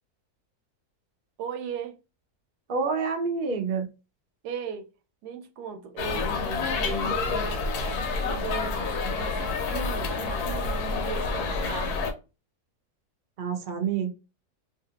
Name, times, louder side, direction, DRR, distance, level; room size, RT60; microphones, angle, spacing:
voice 1, 1.4-2.0 4.4-4.9 5.2-12.1, right 6 dB, 90° right, 1.2 m, -37 dB
voice 2, 2.7-3.9 13.4-14.1, right 5 dB, 50° right, 0.6 m, -27 dB
sound 1, 6.0-12.1, left 4 dB, 80° left, 1.1 m, -28 dB
2.7 x 2.5 x 2.8 m
omnidirectional pair, 1.7 m